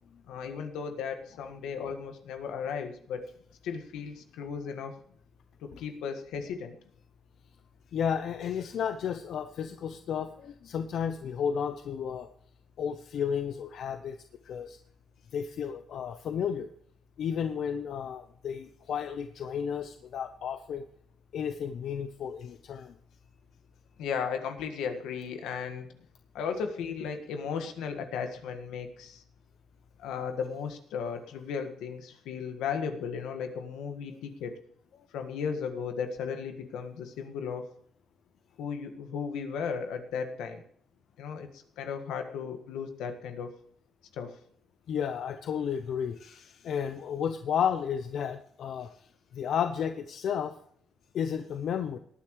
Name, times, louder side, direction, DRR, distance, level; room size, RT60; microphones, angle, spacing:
voice 1, 0.3-3.3 3.6-5.0 5.6-6.8 24.0-25.9 26.3-29.2 30.0-34.6 35.1-37.7 38.6-40.6 41.2-43.5 44.1-44.4, left 6 dB, 90° left, 6 dB, 1.6 m, -35 dB
voice 2, 7.9-12.3 12.8-14.2 14.4-14.8 15.3-16.7 17.2-20.8 21.3-22.9 44.9-48.9 49.3-50.5 51.1-52.0, left 8 dB, 70° left, 8 dB, 0.8 m, -32 dB
18.5 x 10.0 x 3.1 m, 0.64 s
cardioid pair, 90°, 0 cm